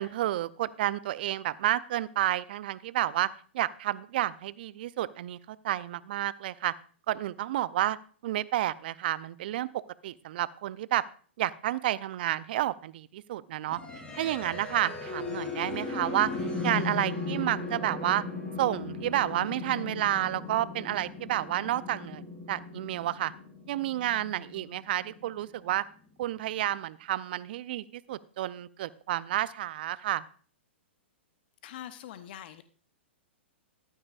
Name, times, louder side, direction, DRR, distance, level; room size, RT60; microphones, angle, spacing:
voice 1, 0.0-6.7 7.1-8.0 8.2-9.7 10.0-11.0 11.4-13.8 14.1-16.3 16.6-18.2 18.6-22.2 22.5-23.3 23.7-25.9 26.2-30.2, right 14 dB, 55° right, 18 dB, 0.5 m, -30 dB
sound 1, 13.7-25.6, left 3 dB, 15° left, 3.9 m, -37 dB
voice 2, 31.6-32.6, left 11 dB, 50° left, 12 dB, 0.8 m, -43 dB
14.5 x 12.0 x 2.5 m, 0.43 s
hypercardioid pair, 115°, 6 cm